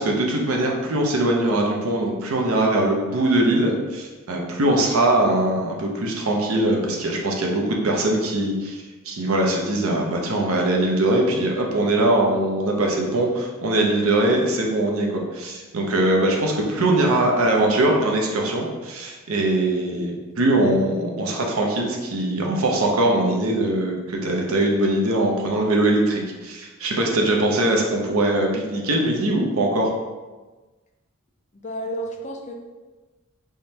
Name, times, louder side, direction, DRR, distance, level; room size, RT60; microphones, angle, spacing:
voice 1, 0.0-29.9, right 1 dB, 80° right, 0 dB, 0.7 m, -21 dB
voice 2, 31.5-32.5, right 1 dB, 35° left, 1 dB, 0.5 m, -31 dB
3.6 x 3.1 x 2.8 m, 1.2 s
head